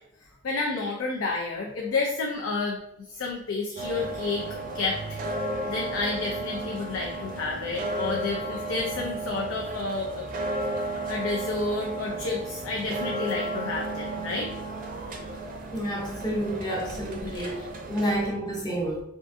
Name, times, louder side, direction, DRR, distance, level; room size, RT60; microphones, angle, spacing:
voice 1, 0.4-2.8 3.1-4.5 4.7-10.3 11.1-14.5 17.2-17.5, left 3 dB, 80° left, -1 dB, 0.5 m, -30 dB
sound 1, 3.8-18.3, right 2 dB, 40° right, 0.5 m, -33 dB
voice 2, 15.7-19.0, right 1 dB, 20° left, -2 dB, 0.7 m, -29 dB
3.6 x 2.5 x 2.5 m, 0.77 s
head